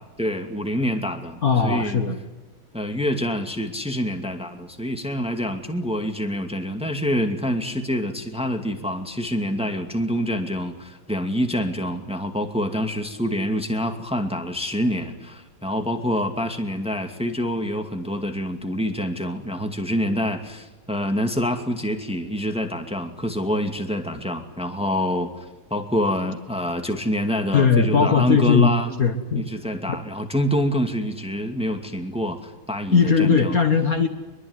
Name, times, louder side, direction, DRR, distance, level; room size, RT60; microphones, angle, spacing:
voice 1, 0.2-2.0 2.7-25.3 25.7-29.0 29.4-33.5, equal, 5° right, 6 dB, 2.2 m, -26 dB
voice 2, 1.4-2.2 27.5-29.5 32.9-34.1, left 5 dB, 45° left, 7 dB, 1.9 m, -19 dB
24.0 x 23.0 x 9.7 m, 1.1 s
omnidirectional pair, 2.3 m